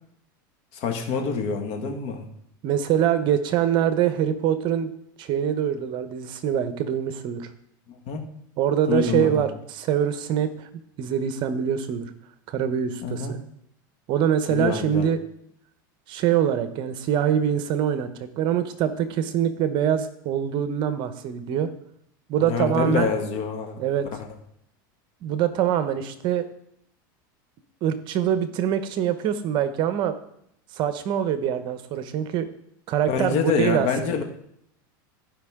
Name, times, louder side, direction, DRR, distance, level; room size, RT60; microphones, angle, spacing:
voice 1, 0.7-2.3 8.1-8.2 8.9-9.4 13.0-13.3 14.5-15.1 22.4-23.8 33.1-34.2, left 6 dB, 55° left, 4 dB, 1.7 m, -26 dB
voice 2, 2.6-4.9 5.2-7.5 8.6-10.7 11.0-12.1 12.5-13.4 14.1-15.2 16.1-21.7 22.3-23.1 23.8-24.1 25.2-26.5 27.8-30.2 30.7-32.5 32.9-34.2, right 9 dB, 45° right, 11 dB, 0.9 m, -24 dB
14.5 x 5.3 x 3.7 m, 0.72 s
supercardioid pair, 125°, 11 cm